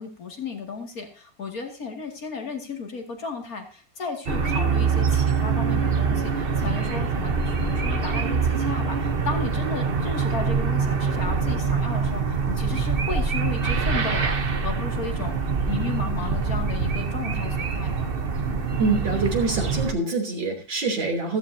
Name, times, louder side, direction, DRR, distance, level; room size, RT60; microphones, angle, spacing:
voice 1, 0.0-15.4 15.7-18.1 18.5-18.7, left 4 dB, 50° left, 3 dB, 2.8 m, -34 dB
Outside Ambience with Birds and Cars, 4.3-19.9, right 5 dB, 40° right, 1.0 m, -24 dB
voice 2, 18.8-21.4, right 3 dB, 85° right, 2 dB, 4.0 m, -25 dB
15.0 x 14.5 x 2.8 m, 0.37 s
omnidirectional pair, 2.0 m